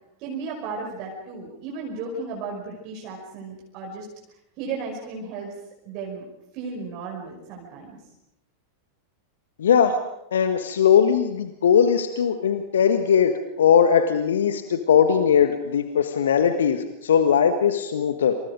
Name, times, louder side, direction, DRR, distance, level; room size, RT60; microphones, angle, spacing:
voice 1, 0.2-4.1 4.6-5.5 5.9-6.2 6.5-8.0, right 4 dB, 40° right, -1 dB, 5.5 m, -34 dB
voice 2, 9.6-10.0 10.3-18.3, left 7 dB, 65° left, 8 dB, 1.5 m, -20 dB
28.0 x 27.5 x 5.1 m, 0.85 s
figure-of-eight pair, 90°, 0 cm